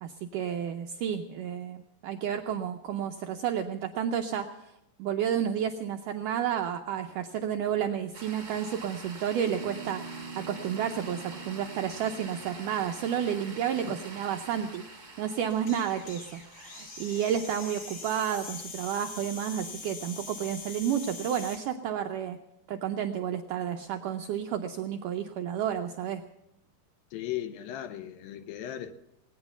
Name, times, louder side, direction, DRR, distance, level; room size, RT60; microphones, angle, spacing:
voice 1, 0.0-4.7 5.0-22.4 22.7-26.2, right 9 dB, 80° right, 1.9 m, -31 dB
sound 1, 8.1-18.4, right 2 dB, 20° right, 1.1 m, -47 dB
Piano, 9.5-14.6, right 4 dB, 55° left, 4.4 m, -45 dB
sound 2, 15.5-21.6, left 3 dB, 35° left, 1.7 m, -43 dB
voice 2, 27.1-28.9, left 12 dB, 75° left, 2.3 m, -37 dB
19.5 x 9.6 x 7.1 m
omnidirectional pair, 4.5 m